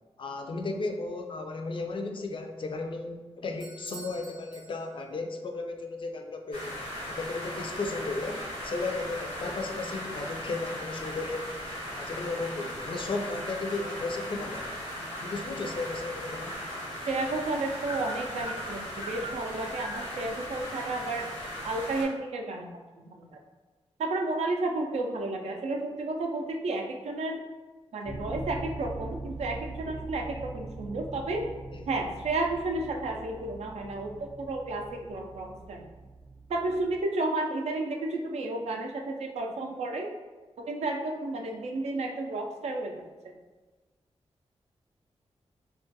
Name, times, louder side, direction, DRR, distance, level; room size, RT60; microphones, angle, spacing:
voice 1, 0.2-6.8 7.1-11.5 11.9-14.8 15.2-16.6 31.7-31.8, left 3 dB, 50° left, 4 dB, 0.4 m, -35 dB
Bell / Doorbell, 3.6-5.3, right 2 dB, 40° right, 0.7 m, -49 dB
sound 1, 6.5-22.0, equal, 90° left, 1.0 m, -38 dB
voice 2, 17.1-21.3 21.6-23.3 24.0-27.4 27.9-31.5 31.9-35.9 36.5-40.1 40.7-43.1, right 2 dB, 75° right, 2 dB, 0.4 m, -32 dB
sound 2, 28.1-37.0, right 2 dB, 15° right, 0.4 m, -42 dB
2.3 x 2.1 x 2.7 m, 1.2 s
cardioid pair, 45°, 11 cm